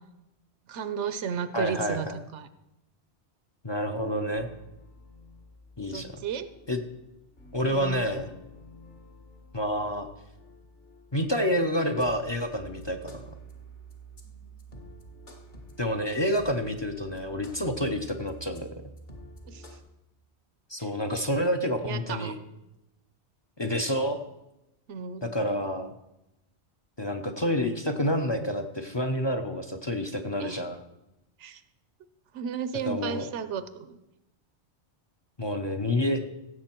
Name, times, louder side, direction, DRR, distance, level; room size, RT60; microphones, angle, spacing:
voice 1, 0.7-2.5 5.8-6.5 7.7-8.0 19.5-19.6 21.8-22.3 24.9-25.2 30.4-30.6 31.4-31.6 32.3-34.0, right 7 dB, 85° right, 12 dB, 1.0 m, -34 dB
voice 2, 1.5-2.2 3.6-4.5 5.8-6.2 6.7-6.8 7.5-8.3 9.5-10.1 11.1-13.3 15.8-18.7 20.7-22.4 23.6-24.2 25.2-25.9 27.0-30.8 32.9-33.2 35.4-36.2, equal, 30° left, 7 dB, 0.7 m, -28 dB
sound 1, 4.3-19.8, right 1 dB, 45° left, 1.5 m, -49 dB
15.5 x 7.4 x 4.5 m, 0.91 s
omnidirectional pair, 1.2 m